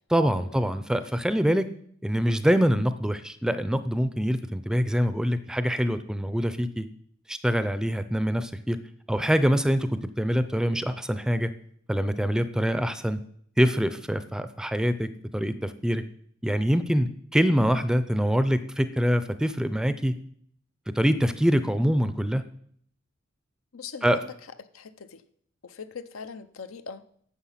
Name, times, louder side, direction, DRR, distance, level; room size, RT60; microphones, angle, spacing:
voice 1, 0.1-1.7 2.0-6.9 7.3-8.8 9.1-11.5 11.9-13.2 13.6-16.0 16.4-20.1 20.9-22.4 24.0-24.2, equal, 5° right, 12 dB, 0.5 m, -24 dB
voice 2, 23.7-24.3 24.7-25.2 25.6-27.0, left 5 dB, 85° left, 11 dB, 0.7 m, -41 dB
10.0 x 6.9 x 5.7 m, 0.63 s
head